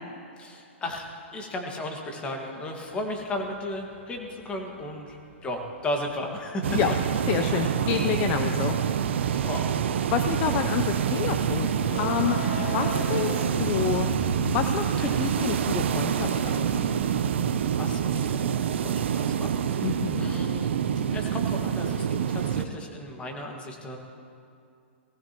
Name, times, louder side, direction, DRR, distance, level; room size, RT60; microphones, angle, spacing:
voice 1, 0.4-6.8 9.3-9.8 12.4-12.7 15.0-15.3 17.7-20.7 21.1-24.0, left 1 dB, 15° left, 2 dB, 1.8 m, -35 dB
Train Crossing, 3.0-17.3, left 2 dB, 80° left, 1.8 m, -39 dB
sound 1, 6.6-22.7, right 8 dB, 70° right, 0.7 m, -26 dB
voice 2, 7.3-8.8 9.2-9.3 10.1-11.7 12.0-14.1 14.5-16.8 19.8-20.3, left 9 dB, 35° left, 7 dB, 0.6 m, -28 dB
19.5 x 15.5 x 3.0 m, 2.5 s
hypercardioid pair, 135°, 7 cm